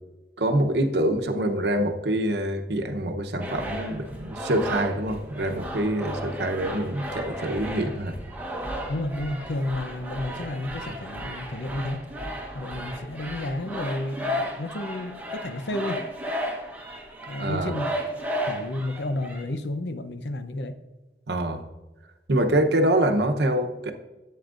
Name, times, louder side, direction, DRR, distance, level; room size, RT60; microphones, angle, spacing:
voice 1, 0.4-8.2 17.4-17.7 21.3-21.6 22.3-23.9, right 1 dB, 75° right, 6 dB, 0.9 m, -25 dB
sound 1, 3.4-19.4, equal, 10° right, 1.0 m, -34 dB
voice 2, 8.9-12.0 12.5-16.0 17.3-17.9 18.5-20.8, left 1 dB, 80° left, 10 dB, 0.7 m, -31 dB
11.5 x 8.5 x 2.5 m, 1.2 s
head